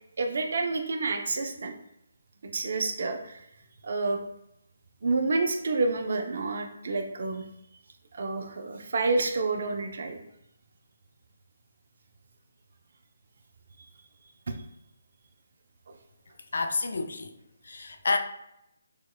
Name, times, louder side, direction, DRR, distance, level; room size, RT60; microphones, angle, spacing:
voice 1, 0.2-1.7 2.4-3.4 3.8-4.2 5.0-7.4 8.1-10.2 14.5-14.6 15.9-16.0, right 3 dB, 60° right, 0.6 m, -29 dB
voice 2, 16.5-17.3 17.6-18.2, left 3 dB, 65° left, 0.6 m, -29 dB
6.6 x 3.0 x 2.2 m
figure-of-eight pair, 150°, 0 cm